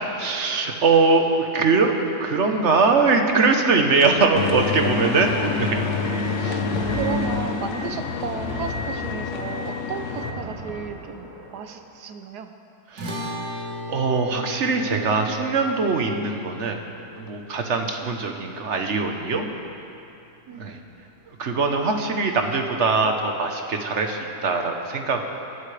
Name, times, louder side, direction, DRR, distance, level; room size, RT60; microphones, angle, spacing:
voice 1, 0.2-5.3 5.7-5.8 6.4-6.6 12.9-13.2 13.9-16.8 17.2-19.5 20.6-20.8 21.4-25.2, right 4 dB, 50° right, 4 dB, 1.3 m, -22 dB
sound 1, 4.3-10.3, left 5 dB, 55° left, 1.1 m, -27 dB
voice 2, 5.1-5.7 6.4-12.5 18.0-18.2 20.5-20.8, right 6 dB, 90° right, 6 dB, 1.5 m, -34 dB
sound 2, 5.3-11.7, right 1 dB, 25° right, 2.4 m, -38 dB
sound 3, 13.0-19.5, left 1 dB, 75° right, 2.3 m, -37 dB
22.5 x 12.5 x 3.4 m, 2.8 s
omnidirectional pair, 1.7 m